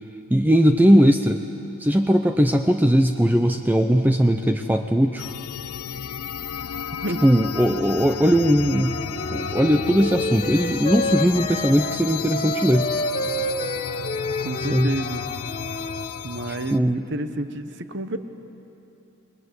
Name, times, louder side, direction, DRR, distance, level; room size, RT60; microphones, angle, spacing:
voice 1, 0.3-1.4 1.8-5.3 7.2-8.9 9.3-12.9 14.7-14.9 16.7-17.0, equal, 10° right, 5 dB, 0.6 m, -19 dB
sound 1, 5.2-16.8, left 8 dB, 90° left, 0.5 m, -33 dB
Wind instrument woodwind instrument, 8.7-16.1, left 1 dB, 30° left, 1.2 m, -30 dB
voice 2, 14.4-15.2 16.2-18.2, right 1 dB, 55° right, 10 dB, 1.1 m, -30 dB
28.5 x 21.0 x 8.1 m, 3.0 s
head